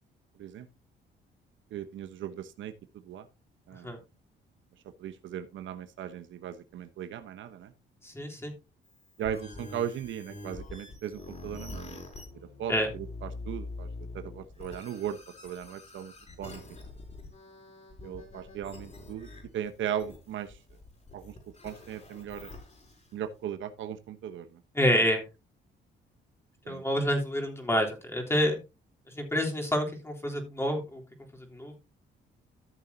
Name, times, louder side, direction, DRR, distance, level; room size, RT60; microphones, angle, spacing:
voice 1, 1.7-2.7 3.0-3.3 3.7-4.0 5.0-7.7 9.2-12.0 12.6-13.9 14.1-15.2 15.4-16.1 16.4-16.6 18.0-20.6 21.1-21.3 21.6-22.5 23.1-24.6 26.6-27.1, right 9 dB, 75° right, 1.1 m, -37 dB
voice 2, 8.0-8.5 12.7-12.9 24.8-25.2 26.7-28.6 29.2-31.0 31.5-31.8, equal, 10° left, 3.5 m, -28 dB
sound 1, 8.8-23.3, left 2 dB, 35° left, 5.4 m, -45 dB
14.0 x 7.1 x 2.8 m
cardioid pair, 90°, 20 cm